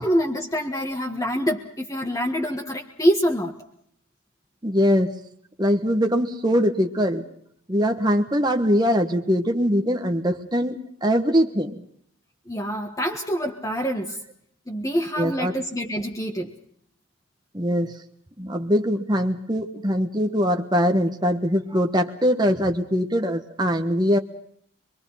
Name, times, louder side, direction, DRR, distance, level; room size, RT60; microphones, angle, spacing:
voice 1, 0.0-3.5 12.5-14.2 14.7-16.5, equal, 15° left, 1 dB, 1.5 m, -25 dB
voice 2, 4.6-5.1 5.6-7.3 7.7-11.8 15.2-15.5 17.5-18.0 18.4-24.2, equal, 20° right, 4 dB, 1.3 m, -22 dB
25.5 x 23.0 x 5.7 m, 0.68 s
head